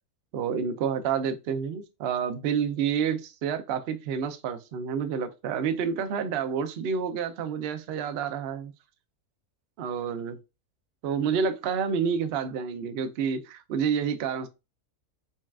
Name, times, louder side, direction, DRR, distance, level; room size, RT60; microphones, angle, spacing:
voice 1, 0.3-8.7 9.8-10.4 11.0-14.5, right 7 dB, 70° right, 0.6 m, -29 dB
5.4 x 2.3 x 2.3 m
omnidirectional pair, 1.6 m